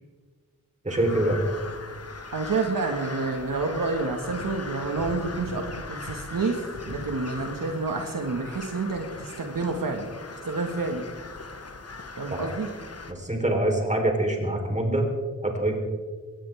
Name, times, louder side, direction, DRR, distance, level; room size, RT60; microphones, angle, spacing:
voice 1, 0.8-1.4 12.3-12.4 13.1-15.1 15.4-15.8, right 1 dB, 20° right, 1 dB, 3.9 m, -25 dB
Crow, 0.9-13.1, left 3 dB, 45° left, 1.5 m, -39 dB
voice 2, 2.3-10.2 10.5-11.0 12.2-12.7, right 3 dB, 70° right, 3 dB, 1.9 m, -29 dB
22.5 x 17.5 x 3.6 m, 1.5 s
wide cardioid pair, 85°, 34 cm